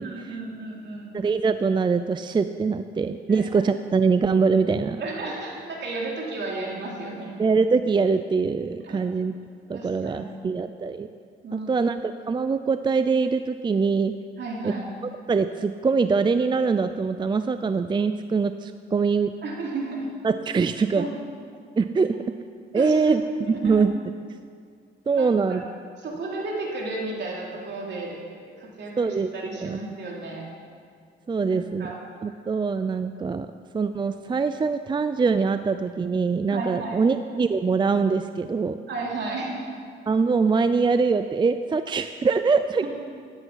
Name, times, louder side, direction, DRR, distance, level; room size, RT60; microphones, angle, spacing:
voice 1, 0.0-1.2 3.3-3.4 5.0-7.4 8.8-9.0 9.7-10.6 11.4-11.9 14.4-14.8 19.4-20.1 21.0-21.1 22.7-23.8 25.1-25.6 26.0-28.2 28.6-30.5 31.4-32.0 32.3-32.4 36.5-37.0 38.9-39.6, right 2 dB, 60° right, -2 dB, 3.2 m, -33 dB
voice 2, 1.1-5.0 7.4-9.3 9.7-11.1 11.5-14.1 14.6-14.7 15.3-19.3 20.2-21.1 21.8-22.1 22.7-23.2 23.5-23.9 25.1-25.6 29.0-29.8 31.3-31.9 32.2-33.5 33.7-38.8 40.1-42.8, right 5 dB, 25° right, 10 dB, 0.4 m, -23 dB
14.0 x 10.5 x 5.7 m, 2.2 s
cardioid pair, 90°, 20 cm